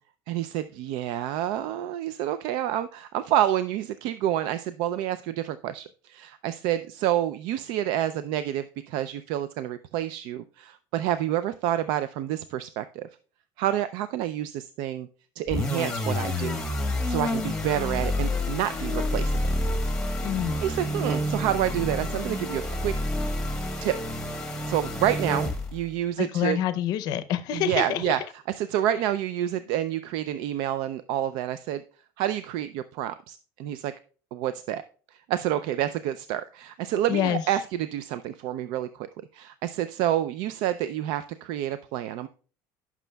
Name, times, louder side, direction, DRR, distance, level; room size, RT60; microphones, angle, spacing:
voice 1, 0.3-13.1 13.6-15.1 15.4-16.6 17.0-19.4 20.6-23.0 23.8-24.0 24.4-26.6 27.5-28.2 28.5-31.8 32.2-33.9 34.3-34.8 35.1-39.1 39.3-42.3, right 12 dB, 70° right, 0.4 m, -28 dB
sound 1, 15.5-25.9, left 1 dB, 10° left, 1.1 m, -29 dB
voice 2, 20.2-20.6 26.2-28.1 37.1-37.4, left 11 dB, 50° left, 0.6 m, -27 dB
14.5 x 6.1 x 2.2 m
cardioid pair, 165°, 8 cm